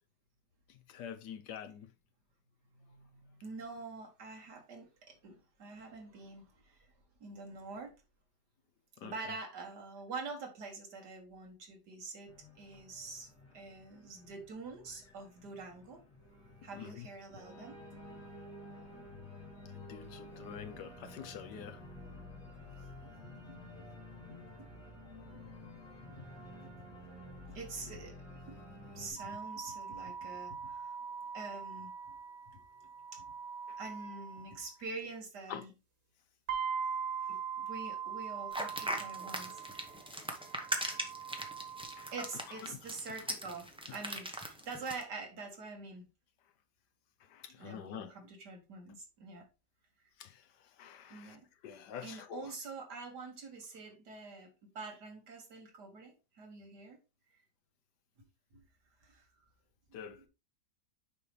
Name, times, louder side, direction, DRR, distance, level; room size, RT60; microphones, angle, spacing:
voice 1, 0.9-1.9 9.0-9.1 16.8-17.1 19.9-21.8 35.5-35.6 42.0-42.1 42.7-42.8 47.3-48.1 50.2-50.3 50.8-51.3 51.6-52.5 59.9-60.3, left 8 dB, 80° left, 1.4 m, -46 dB
voice 2, 2.8-6.9 7.2-7.9 9.0-12.3 12.6-16.0 16.6-18.0 20.3-20.4 20.7-20.8 22.1-22.2 23.0-23.2 23.5-23.6 24.1-24.7 25.3-25.7 26.1-26.3 26.6-26.7 27.5-28.6 28.9-31.0 31.3-32.2 32.5-32.6 33.1-33.3 33.8-35.7 37.3-39.9 42.1-46.1 47.6-49.5 51.1-51.5 52.0-57.0 58.5-58.6 59.0-59.3 60.0-60.3, right 3 dB, 75° right, 2.1 m, -46 dB
Organ, 12.3-29.1, left 1 dB, 50° left, 3.2 m, -51 dB
sound 1, 29.2-34.6 36.5-42.5, right 6 dB, 90° right, 2.5 m, -42 dB
sound 2, 38.5-45.0, right 1 dB, 5° right, 0.7 m, -39 dB
6.7 x 5.3 x 3.3 m
omnidirectional pair, 1.8 m